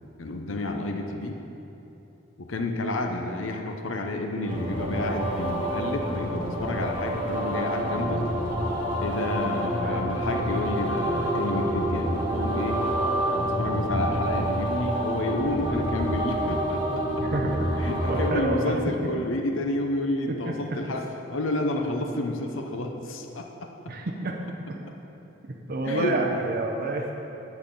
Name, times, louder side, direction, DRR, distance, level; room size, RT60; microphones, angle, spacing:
voice 1, 0.2-1.4 2.4-8.3 9.0-12.8 13.4-17.0 17.8-21.0 21.3-23.7 25.9-26.2, left 2 dB, 75° left, 3 dB, 0.7 m, -30 dB
sound 1, 4.4-18.3, equal, 25° right, 1.8 m, -28 dB
voice 2, 18.1-18.7 20.3-20.5 23.9-24.4 25.7-27.1, right 2 dB, 50° right, -1 dB, 0.7 m, -28 dB
10.5 x 4.1 x 7.7 m, 3.0 s
head